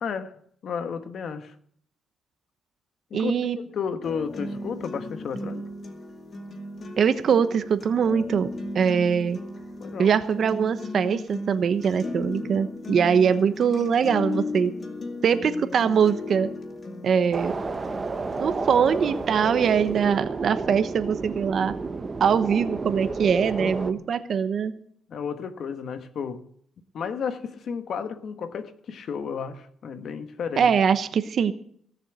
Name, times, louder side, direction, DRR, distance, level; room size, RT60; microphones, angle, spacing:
voice 1, 0.0-1.5 3.1-5.6 9.8-10.1 23.6-24.0 25.1-26.5 26.9-30.7, left 6 dB, 55° left, 1.2 m, -33 dB
voice 2, 3.1-3.6 7.0-8.5 8.7-9.4 10.0-14.7 15.2-16.5 17.0-17.5 18.4-21.7 22.2-24.8 30.6-31.5, right 7 dB, 50° right, 1.0 m, -22 dB
sound 1, 4.0-20.0, left 2 dB, 40° left, 2.1 m, -36 dB
sound 2, 17.3-23.9, right 4 dB, 25° right, 0.9 m, -31 dB
17.0 x 7.1 x 8.0 m
cardioid pair, 125°, 0 cm